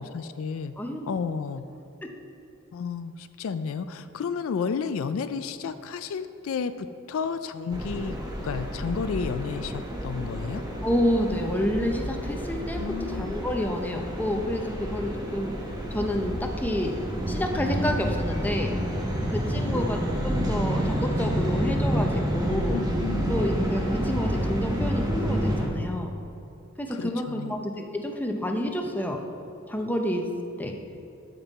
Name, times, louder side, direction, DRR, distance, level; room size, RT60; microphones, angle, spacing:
voice 1, 0.0-0.7 1.1-1.6 2.7-8.2 8.4-10.6 12.8-13.4 19.6-19.8 22.7-23.3 26.9-27.6, left 5 dB, 70° left, 11 dB, 0.4 m, -32 dB
sound 1, 7.7-25.7, equal, 20° right, 1.1 m, -29 dB
voice 2, 10.8-12.8 13.1-15.5 15.9-17.0 17.3-18.7 19.3-22.8 23.3-26.2 26.8-29.2 29.7-30.3 30.6-30.7, left 1 dB, 10° left, 2 dB, 0.7 m, -29 dB
13.5 x 5.4 x 4.1 m, 2.7 s
head